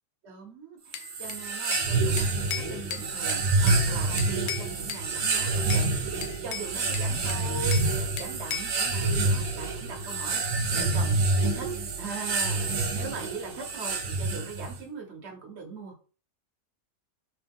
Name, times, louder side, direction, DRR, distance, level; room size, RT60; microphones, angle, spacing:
voice 1, 0.2-10.4 10.7-11.2 11.4-11.7 12.0-15.9, right 4 dB, 60° right, 2 dB, 1.3 m, -41 dB
Bell / Glass, 0.9-1.9 2.2-3.8 4.2-5.0 5.3-5.9 6.2-7.9 8.2-8.8, left 8 dB, 65° left, 0.5 m, -36 dB
sound 1, 0.9-14.8, right 3 dB, 90° right, 1.3 m, -27 dB
3.5 x 3.2 x 3.5 m, 0.38 s
omnidirectional pair, 1.3 m